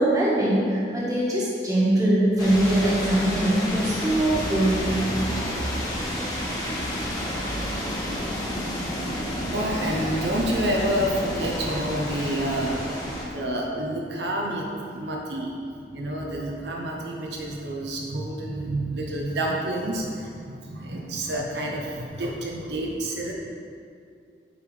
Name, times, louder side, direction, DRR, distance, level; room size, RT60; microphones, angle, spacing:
voice 1, 0.0-5.0, right 1 dB, 20° right, -6 dB, 1.6 m, -22 dB
sound 1, 2.4-13.2, equal, 20° left, 1.7 m, -30 dB
voice 2, 9.5-15.6 15.9-23.3, right 1 dB, 70° right, -1 dB, 0.9 m, -29 dB
8.8 x 5.2 x 5.0 m, 2.3 s
head